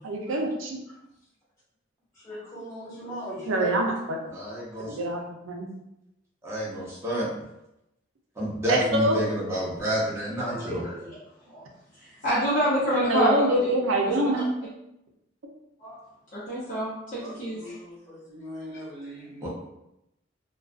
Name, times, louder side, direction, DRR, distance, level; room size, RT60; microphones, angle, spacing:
voice 1, 0.0-0.8 3.5-3.9 4.8-5.7 8.7-9.2 13.1-14.5, right 1 dB, 90° right, 1 dB, 0.5 m, -25 dB
voice 2, 2.1-3.7 17.2-19.5, equal, 15° left, -10 dB, 1.3 m, -39 dB
voice 3, 4.3-5.0 6.4-7.3 8.4-10.8 19.4-19.5, equal, 15° right, -7 dB, 0.7 m, -29 dB
voice 4, 10.5-11.2 11.5-11.6 12.0-13.7 14.0-14.3 15.8-16.0 16.3-17.8, equal, 40° left, -11 dB, 0.6 m, -28 dB
2.4 x 2.2 x 2.3 m, 0.87 s
head